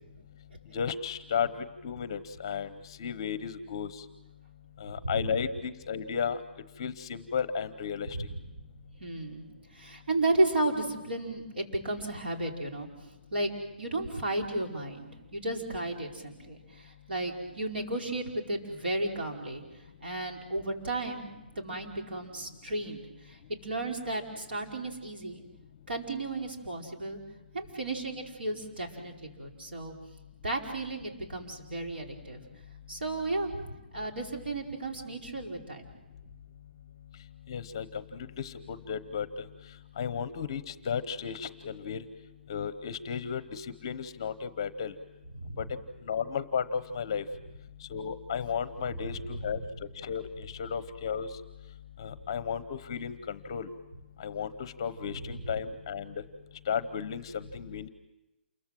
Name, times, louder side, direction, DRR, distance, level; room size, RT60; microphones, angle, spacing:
voice 1, 0.7-2.7 3.0-4.0 4.8-6.4 6.8-8.1 37.5-39.3 40.0-42.0 42.5-44.9 45.6-45.7 46.0-47.2 47.9-49.6 50.0-51.3 52.0-53.7 54.2-56.2 56.7-57.9, left 7 dB, 25° left, 14 dB, 0.9 m, -34 dB
voice 2, 5.0-5.3 8.1-8.3 9.0-9.5 9.7-12.9 13.3-13.5 13.8-19.6 20.0-21.3 21.5-25.4 25.9-27.2 27.5-29.9 30.4-32.4 32.9-35.9 45.3-45.6 49.0-49.6 55.1-55.5, right 2 dB, 65° right, 1 dB, 5.0 m, -33 dB
28.5 x 22.0 x 7.6 m, 0.96 s
hypercardioid pair, 175°, 6 cm